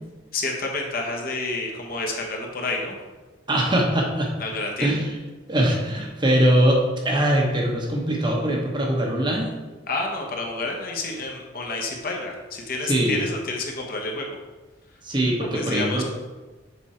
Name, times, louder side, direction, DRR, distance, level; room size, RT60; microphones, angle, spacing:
voice 1, 0.3-3.0 4.4-4.9 9.9-14.3 15.4-16.0, left 3 dB, 50° left, 0 dB, 1.1 m, -29 dB
voice 2, 3.5-4.3 4.8-5.0 5.5-9.5 12.8-13.2 15.0-16.0, right 1 dB, 25° right, -1 dB, 1.0 m, -22 dB
7.1 x 4.4 x 4.3 m, 1.2 s
head